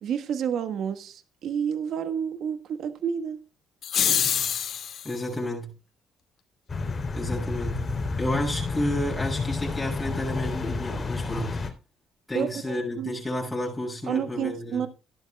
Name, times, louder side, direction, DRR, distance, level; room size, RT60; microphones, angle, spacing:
voice 1, 0.0-3.4 12.3-13.1 14.1-14.9, right 8 dB, 65° right, 1.4 m, -30 dB
sound 1, 3.8-5.1, left 8 dB, 60° left, 2.1 m, -25 dB
voice 2, 5.0-5.7 7.1-7.9 8.2-11.6 12.3-14.8, left 1 dB, 10° left, 7.1 m, -31 dB
sound 2, 6.7-11.7, left 4 dB, 30° left, 3.2 m, -30 dB
14.5 x 11.5 x 2.3 m
cardioid pair, 85°, 0 cm